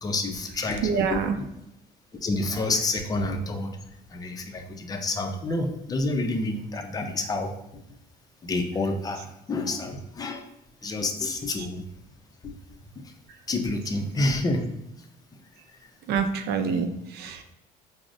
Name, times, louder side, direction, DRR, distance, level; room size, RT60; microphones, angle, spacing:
voice 1, 0.0-1.5 2.2-3.8 4.1-7.8 8.4-10.4 10.8-11.8 12.4-12.6 13.5-14.7 16.6-16.8, left 2 dB, 20° left, 4 dB, 0.4 m, -29 dB
voice 2, 0.8-1.4 10.9-11.0 11.6-11.7 16.1-17.5, right 6 dB, 75° right, 7 dB, 0.4 m, -27 dB
4.7 x 2.0 x 2.5 m, 0.83 s
cardioid pair, 110°, 17 cm